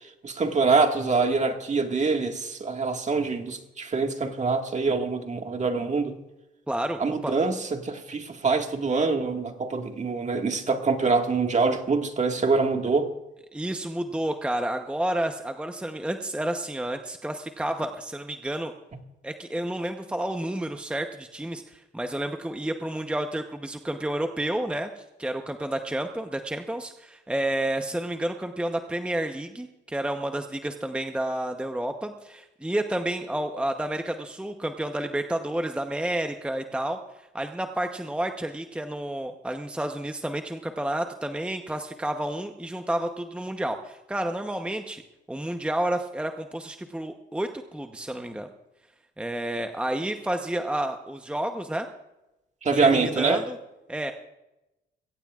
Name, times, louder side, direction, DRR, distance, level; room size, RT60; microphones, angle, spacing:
voice 1, 0.2-6.2 7.0-13.1 52.6-53.4, right 4 dB, 35° right, 1.8 m, -25 dB
voice 2, 6.7-7.3 13.5-18.7 19.2-45.0 45.3-48.5 49.2-51.9 52.7-53.6 53.9-54.1, right 1 dB, 5° right, 0.9 m, -30 dB
23.0 x 16.5 x 2.4 m
cardioid pair, 90°, 20 cm